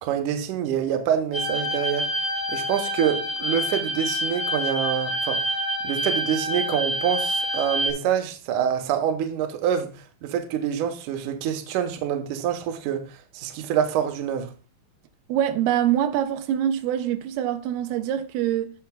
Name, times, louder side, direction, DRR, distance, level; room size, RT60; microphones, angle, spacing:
voice 1, 0.0-5.5 5.8-9.9 10.2-14.5, right 9 dB, 70° right, 2.2 m, -26 dB
sound 1, 1.3-7.9, equal, 15° left, 1.3 m, -27 dB
voice 2, 15.3-18.7, right 11 dB, 90° right, 2.7 m, -24 dB
16.5 x 5.7 x 2.2 m
omnidirectional pair, 4.4 m